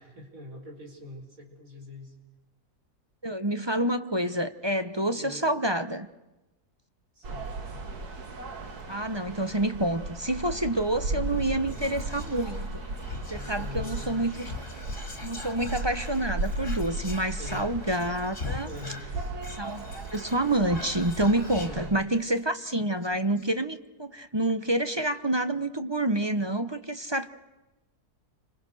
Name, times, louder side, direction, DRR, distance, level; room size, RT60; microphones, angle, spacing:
voice 1, 0.0-2.1 5.1-5.5 7.1-7.8 11.1-11.5 13.2-14.6 17.3-17.7 18.6-19.1 21.6-22.0, left 1 dB, 60° right, 5.7 m, -44 dB
voice 2, 3.2-6.1 8.9-12.7 13.3-14.5 15.2-18.7 19.6-27.3, right 1 dB, 20° right, 1.0 m, -28 dB
sound 1, 7.2-21.9, right 2 dB, 75° right, 2.6 m, -36 dB
sound 2, 10.9-16.5, equal, 20° left, 4.1 m, -49 dB
Whispering, 11.3-22.4 22.7-22.8 23.0-23.4, left 3 dB, 50° left, 3.1 m, -41 dB
29.5 x 26.0 x 6.5 m
omnidirectional pair, 1.7 m